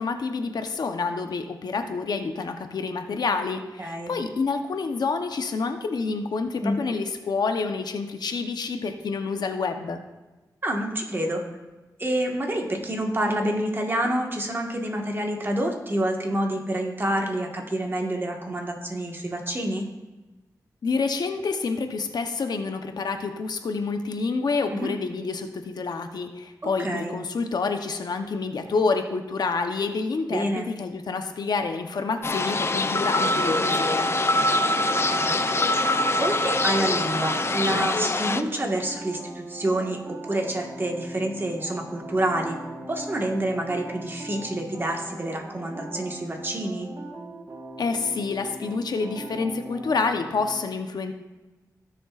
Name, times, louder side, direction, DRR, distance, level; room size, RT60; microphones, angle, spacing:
voice 1, 0.0-10.0 20.8-34.1 47.8-51.1, left 4 dB, 80° left, 6 dB, 0.8 m, -28 dB
voice 2, 3.8-4.1 6.6-6.9 10.6-11.4 12.0-19.8 24.7-24.9 26.6-27.1 30.3-30.7 35.1-35.4 36.2-40.0 40.3-42.6 42.9-46.9, right 1 dB, 30° right, 1 dB, 1.5 m, -28 dB
sound 1, 32.2-38.4, left 2 dB, 40° left, 0.4 m, -24 dB
sound 2, 33.5-50.6, right 1 dB, 50° right, 1.3 m, -40 dB
17.0 x 6.8 x 2.4 m, 1.2 s
wide cardioid pair, 95°, 7 cm